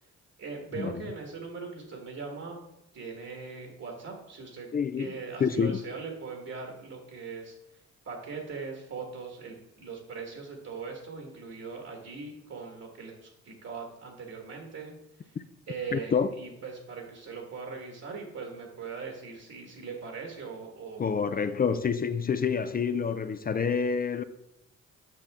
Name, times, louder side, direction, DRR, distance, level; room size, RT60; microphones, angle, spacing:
voice 1, 0.4-2.6 2.9-4.7 5.0-7.6 8.1-15.3 15.7-21.0, right 4 dB, 55° right, 1.7 m, -40 dB
voice 2, 4.7-5.8 15.9-16.3 21.0-24.2, left 6 dB, 30° left, 0.5 m, -28 dB
9.1 x 5.7 x 3.6 m
cardioid pair, 90°, 30 cm